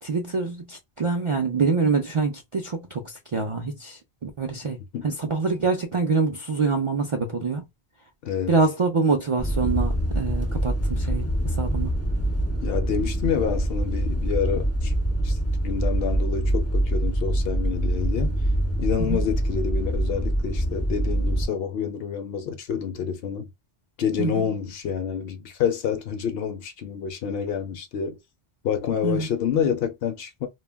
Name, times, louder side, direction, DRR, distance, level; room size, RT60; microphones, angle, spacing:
voice 1, 0.0-4.8 5.0-7.6 8.5-11.9 19.0-19.2 24.2-24.5 29.0-29.3, right 4 dB, 55° right, 0.3 m, -25 dB
voice 2, 8.2-8.5 12.6-14.9 15.2-15.4 15.6-18.4 18.8-23.5 24.0-28.2 28.6-30.5, left 7 dB, 70° left, 0.7 m, -28 dB
sound 1, 9.4-21.5, right 1 dB, 25° left, 0.3 m, -25 dB
2.2 x 2.1 x 3.3 m
omnidirectional pair, 1.1 m